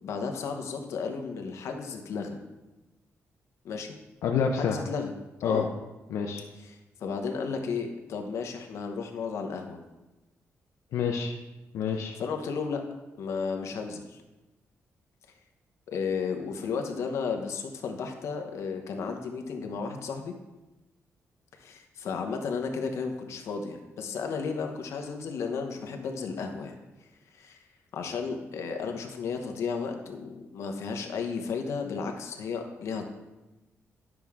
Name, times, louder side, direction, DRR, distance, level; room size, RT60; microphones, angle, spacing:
voice 1, 0.0-2.4 3.6-3.9 4.6-5.1 5.4-5.7 6.6-9.8 12.1-12.8 13.2-14.2 15.9-20.3 21.6-26.7 27.3-27.6 27.9-33.1, left 5 dB, 65° left, 4 dB, 1.0 m, -33 dB
voice 2, 4.2-4.8 5.4-5.6 6.1-6.4 10.9-11.3 11.7-12.1, left 6 dB, 85° left, 1 dB, 0.7 m, -27 dB
10.5 x 6.1 x 3.6 m, 1.1 s
wide cardioid pair, 165°, 5 cm